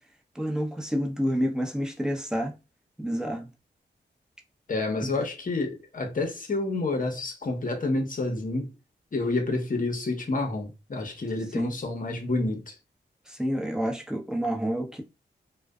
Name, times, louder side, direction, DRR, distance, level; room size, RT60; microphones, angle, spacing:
voice 1, 0.3-2.5 3.0-3.5 5.0-5.1 11.5-11.7 13.3-15.0, equal, 5° right, 0.8 m, -29 dB
voice 2, 4.7-8.7 9.1-12.8, left 2 dB, 45° left, 0.9 m, -29 dB
2.5 x 2.2 x 2.3 m
cardioid pair, 45°, 19 cm